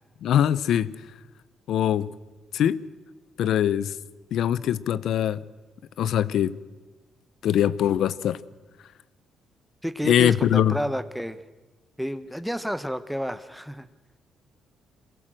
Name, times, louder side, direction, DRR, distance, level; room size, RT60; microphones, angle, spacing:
voice 1, 0.2-1.0 1.7-2.1 2.5-2.8 3.4-3.9 4.3-5.4 6.0-6.6 7.4-8.4 10.0-10.8, left 10 dB, 75° left, 18 dB, 0.7 m, -22 dB
voice 2, 9.8-11.4 12.0-13.9, equal, ahead, 11 dB, 0.9 m, -30 dB
23.0 x 16.5 x 7.7 m, 1.2 s
cardioid pair, 90°, 0 cm